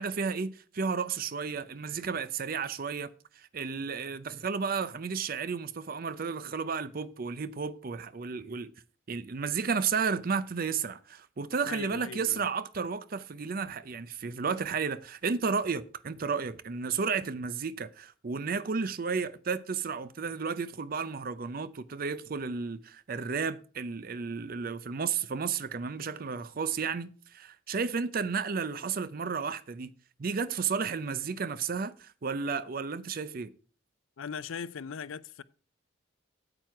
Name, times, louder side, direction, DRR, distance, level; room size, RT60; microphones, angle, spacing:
voice 1, 0.0-8.7 9.1-29.9 30.2-33.5, right 5 dB, 45° right, 0.5 m, -33 dB
voice 2, 11.6-12.5 34.2-35.4, left 6 dB, 80° left, 0.5 m, -39 dB
9.0 x 7.8 x 4.6 m
head